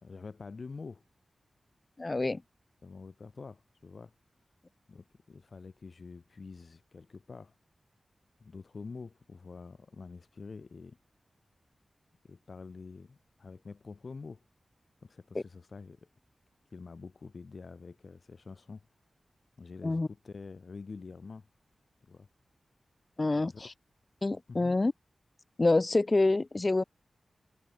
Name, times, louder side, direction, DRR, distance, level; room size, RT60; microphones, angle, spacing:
voice 1, 0.0-1.0 2.8-4.1 4.9-7.6 8.4-11.0 12.2-14.4 15.0-16.1 16.7-18.9 19.6-21.5 22.0-22.3 23.3-23.6 24.5-24.8, left 4 dB, 55° left, 3.5 m, -47 dB
voice 2, 2.0-2.4 19.8-20.1 23.2-23.5 24.2-24.9 25.6-26.8, left 2 dB, 35° left, 1.6 m, -26 dB
wide cardioid pair, 90°, 0 cm